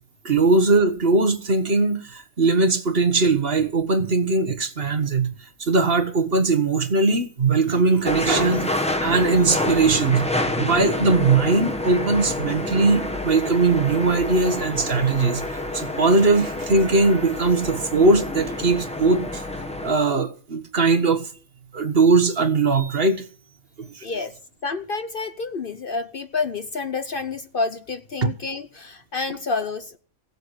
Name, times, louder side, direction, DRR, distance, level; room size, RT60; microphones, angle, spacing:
voice 1, 0.2-5.3 5.6-10.3 10.5-19.4 19.8-21.3 21.7-23.2 23.8-24.1 28.2-28.3, right 3 dB, 50° right, 1.5 m, -20 dB
sound 1, 8.1-19.9, left 1 dB, 5° left, 1.4 m, -28 dB
voice 2, 24.0-24.3 24.6-30.0, left 4 dB, 50° left, 0.9 m, -29 dB
16.5 x 8.2 x 7.9 m
omnidirectional pair, 1.4 m